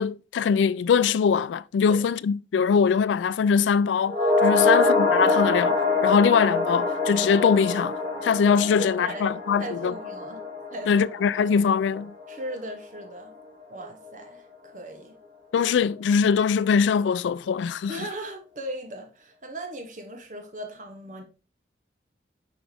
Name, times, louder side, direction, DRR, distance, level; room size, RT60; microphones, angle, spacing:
voice 1, 0.0-5.8 6.0-9.9 10.9-12.1 15.5-18.0, left 6 dB, 85° left, 0.3 m, -22 dB
sound 1, 4.1-12.5 12.8-12.9, left 3 dB, 70° right, 2.9 m, -25 dB
voice 2, 8.7-9.3 9.6-10.4 10.7-11.0 12.3-13.3 13.7-15.1 17.9-21.2, right 1 dB, 45° right, 1.0 m, -38 dB
6.0 x 4.9 x 3.4 m
head